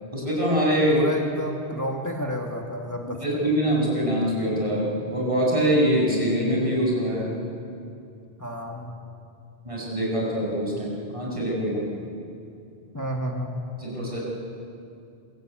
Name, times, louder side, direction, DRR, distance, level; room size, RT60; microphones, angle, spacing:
voice 1, 0.1-1.0 3.0-7.3 9.7-11.9 13.8-14.2, equal, 30° right, -3 dB, 7.5 m, -24 dB
voice 2, 0.9-3.5 8.4-9.0 12.9-13.6, equal, 15° left, 1 dB, 2.2 m, -31 dB
26.5 x 23.5 x 9.2 m, 2.5 s
omnidirectional pair, 1.1 m